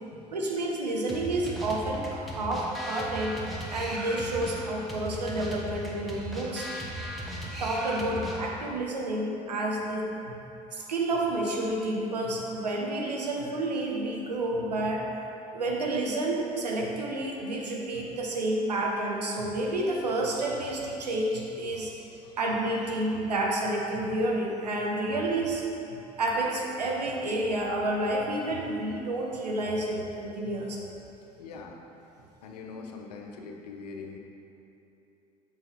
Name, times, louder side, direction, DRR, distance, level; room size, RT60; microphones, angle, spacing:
voice 1, 0.3-3.4 3.7-10.4 10.7-15.2 15.5-21.9 22.4-25.6 26.2-30.8, right 1 dB, 85° right, -1 dB, 0.8 m, -30 dB
sound 1, 1.1-8.7, equal, ahead, 1.3 m, -37 dB
voice 2, 31.4-31.8 32.4-34.2, left 4 dB, 75° left, 2 dB, 0.7 m, -42 dB
7.4 x 5.5 x 3.3 m, 3.0 s
figure-of-eight pair, 60°, 20 cm